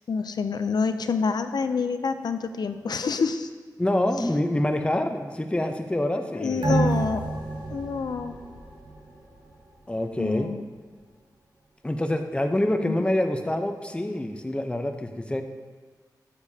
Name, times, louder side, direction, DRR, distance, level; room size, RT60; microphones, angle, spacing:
voice 1, 0.1-3.5 6.3-7.2 7.7-8.3 10.2-10.6 12.8-13.0, left 5 dB, 70° left, 9 dB, 0.5 m, -27 dB
voice 2, 3.8-7.1 9.9-10.5 11.8-15.4, left 1 dB, 15° left, 5 dB, 0.7 m, -26 dB
sound 1, 6.6-9.5 9.9-10.0, right 3 dB, 90° right, 1.3 m, -29 dB
11.5 x 7.1 x 2.8 m, 1.5 s
wide cardioid pair, 65°, 7 cm